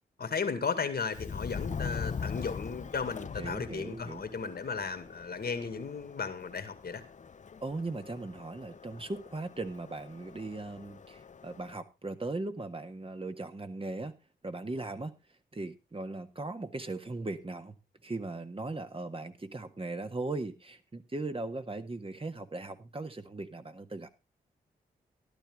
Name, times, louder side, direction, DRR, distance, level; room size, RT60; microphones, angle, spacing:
voice 1, 0.2-7.0, left 5 dB, 60° left, 9 dB, 2.1 m, -35 dB
Subway metro underground, 1.1-11.8, left 6 dB, 45° left, 0.7 m, -42 dB
voice 2, 3.4-4.2 7.6-14.1 14.4-15.1 15.5-17.8 18.0-24.1, right 2 dB, 30° right, 8 dB, 1.7 m, -38 dB
13.0 x 12.0 x 3.7 m, 0.27 s
supercardioid pair, 40°, 18 cm